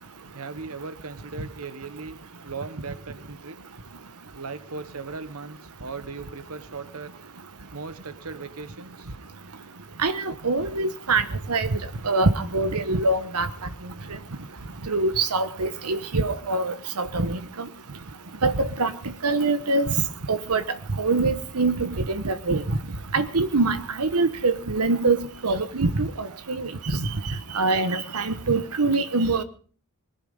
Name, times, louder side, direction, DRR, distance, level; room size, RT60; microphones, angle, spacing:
voice 1, 0.3-2.2 2.4-3.6 4.3-7.1 7.7-9.3 11.1-11.9 26.3-26.8 28.0-28.8, right 4 dB, 70° right, 1.2 m, -39 dB
voice 2, 10.0-11.7 12.0-13.5 14.9-17.7 18.4-18.9 19.2-19.9 20.3-20.6 21.0-22.6 23.1-25.2 25.4-26.7 27.0-29.4, right 3 dB, 90° right, 1.2 m, -24 dB
20.5 x 11.0 x 5.5 m
head